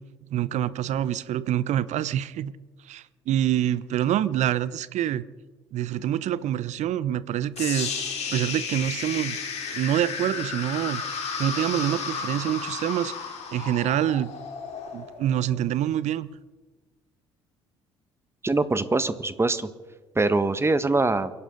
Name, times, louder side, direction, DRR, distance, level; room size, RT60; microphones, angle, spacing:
voice 1, 0.3-2.5 2.9-5.3 5.7-7.9 8.3-9.4 9.7-11.0 11.4-13.1 13.5-14.3 14.9-16.3, right 11 dB, 55° right, 17 dB, 0.9 m, -26 dB
sound 1, 7.6-15.6, left 5 dB, 50° left, 4.1 m, -33 dB
voice 2, 18.4-19.7 20.1-21.3, right 3 dB, 20° right, 13 dB, 1.6 m, -23 dB
29.0 x 12.0 x 4.0 m, 1.3 s
hypercardioid pair, 55°, 14 cm